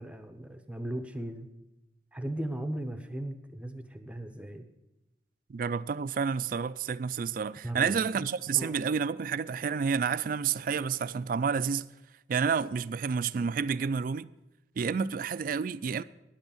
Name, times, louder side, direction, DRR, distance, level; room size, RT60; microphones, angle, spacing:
voice 1, 0.0-1.5 2.1-4.6 7.6-8.3 8.5-8.8, right 1 dB, 5° right, 0.7 m, -37 dB
voice 2, 5.5-11.9 12.3-14.3 14.8-16.0, right 6 dB, 45° right, 0.3 m, -30 dB
10.5 x 8.0 x 7.2 m
head